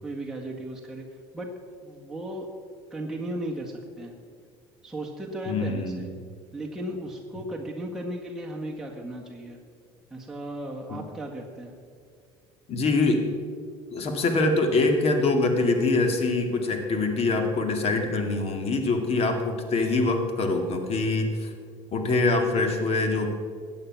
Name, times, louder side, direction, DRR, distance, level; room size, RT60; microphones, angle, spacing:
voice 1, 0.0-1.1 1.3-1.5 1.8-2.5 2.9-4.2 4.8-6.1 6.5-9.6 10.1-11.8, right 1 dB, 5° right, -3 dB, 1.7 m, -35 dB
voice 2, 5.5-6.1 10.9-11.0 12.7-13.2 13.9-21.5 21.9-23.3, left 3 dB, 50° left, 5 dB, 2.2 m, -24 dB
14.5 x 8.9 x 6.0 m, 2.2 s
supercardioid pair, 85°, 13 cm